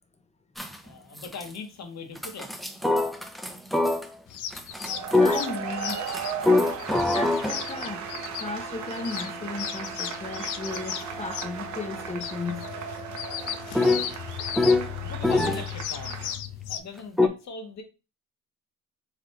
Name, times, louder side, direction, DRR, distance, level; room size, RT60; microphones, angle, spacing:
sound 1, 0.6-0.9 1.2-1.5 2.2-4.1 4.5-15.6 17.2-17.3, left 2 dB, ahead, 0.5 m, -27 dB
voice 1, 0.8-2.5 14.6-16.3 16.7-17.8, left 5 dB, 65° left, 1.2 m, -40 dB
sound 2, 4.3-16.8, left 10 dB, 85° left, 0.5 m, -36 dB
sound 3, 4.7-16.3, right 6 dB, 70° right, 1.0 m, -37 dB
voice 2, 5.2-6.4 7.1-8.1 8.4-12.7, left 3 dB, 20° left, 0.8 m, -35 dB
3.8 x 3.3 x 3.2 m
cardioid pair, 90°, 30 cm